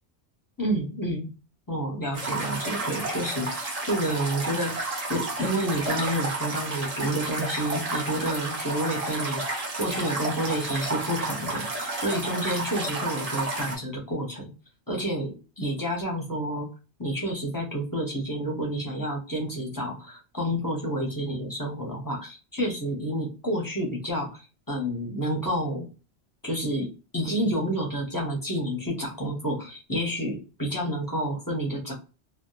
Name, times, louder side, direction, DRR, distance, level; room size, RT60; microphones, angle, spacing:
voice 1, 0.6-1.3 1.7-14.5 14.9-16.7 17.0-25.9 26.4-31.9, equal, 20° left, -1 dB, 0.7 m, -29 dB
sound 1, 2.1-13.8, right 2 dB, 40° right, 0.8 m, -31 dB
2.8 x 2.2 x 2.2 m, 0.32 s
omnidirectional pair, 1.1 m